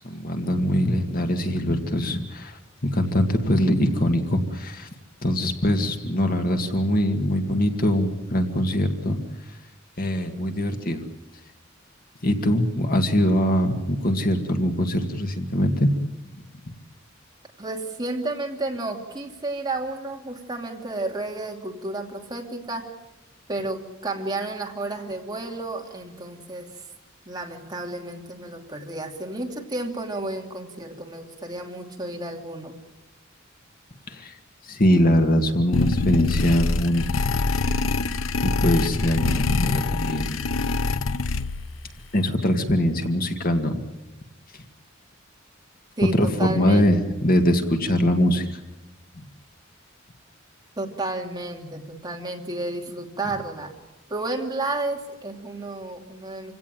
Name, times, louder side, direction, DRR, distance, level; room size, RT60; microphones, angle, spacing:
voice 1, 0.0-4.9 5.2-9.2 10.0-11.0 12.2-15.9 34.1-34.3 34.7-37.1 38.4-40.4 42.1-43.8 46.1-48.5, equal, 45° left, 5 dB, 2.1 m, -22 dB
voice 2, 17.6-22.9 23.5-26.8 27.3-32.7 46.0-46.8 50.8-53.7 54.1-56.5, right 2 dB, 20° right, 1 dB, 2.8 m, -32 dB
sound 1, 35.7-41.8, left 3 dB, 90° left, 0.8 m, -24 dB
27.0 x 17.0 x 9.0 m, 1.1 s
head